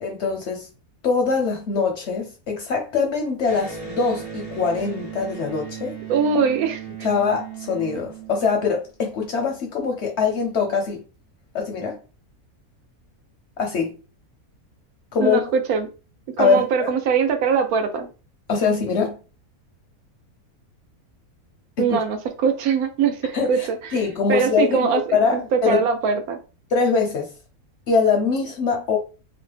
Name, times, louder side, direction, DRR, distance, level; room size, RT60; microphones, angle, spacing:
voice 1, 0.0-0.7 1.0-6.0 7.0-11.0 11.5-12.0 13.6-14.0 15.1-15.5 16.4-16.9 18.5-19.2 21.8-22.0 23.3-25.8 26.7-27.3 27.9-29.0, left 5 dB, 65° left, 0.7 m, -23 dB
Electric guitar, 3.4-8.9, right 7 dB, 50° right, 1.2 m, -36 dB
voice 2, 6.1-6.8 15.2-15.9 16.4-18.1 21.8-24.0 24.3-26.4, right 6 dB, 80° right, 1.1 m, -22 dB
3.0 x 2.0 x 3.2 m
omnidirectional pair, 1.6 m